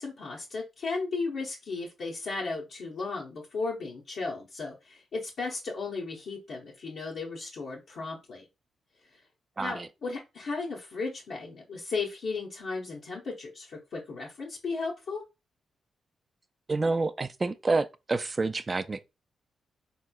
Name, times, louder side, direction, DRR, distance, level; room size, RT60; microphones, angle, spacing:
voice 1, 0.0-8.5 9.0-9.2 9.6-15.2, left 4 dB, 70° left, 0.7 m, -35 dB
voice 2, 9.6-9.9 16.7-19.0, right 3 dB, 35° right, 0.3 m, -28 dB
3.5 x 2.9 x 2.3 m
supercardioid pair, 50°, 0 cm